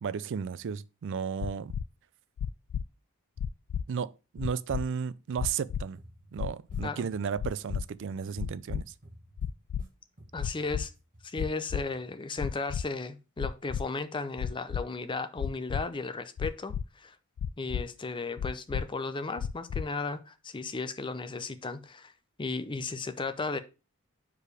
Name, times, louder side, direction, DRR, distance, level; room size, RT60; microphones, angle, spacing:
voice 1, 0.0-1.7 3.9-6.0 6.3-8.9, right 6 dB, 55° right, 0.4 m, -34 dB
sound 1, 1.4-1.8 2.4-2.8 3.4-3.8 4.4-4.8 5.4-5.8 6.4-6.8 7.4-7.8 8.4-8.8 9.4-9.8 10.4-10.8 11.4-11.8 12.4-12.8 13.4-13.8 14.4-14.8 15.4-15.8 16.4-16.8 17.4-17.8 18.4-18.8 19.4-19.8, left 8 dB, 85° left, 0.3 m, -32 dB
sound 2, 5.9-6.8 7.1-9.9 10.2-11.4 11.7-12.1, right 1 dB, 35° right, 1.6 m, -54 dB
voice 2, 10.3-10.9 11.2-17.2 17.6-22.1 22.4-23.6, left 3 dB, 20° left, 0.5 m, -35 dB
4.8 x 4.7 x 4.8 m
head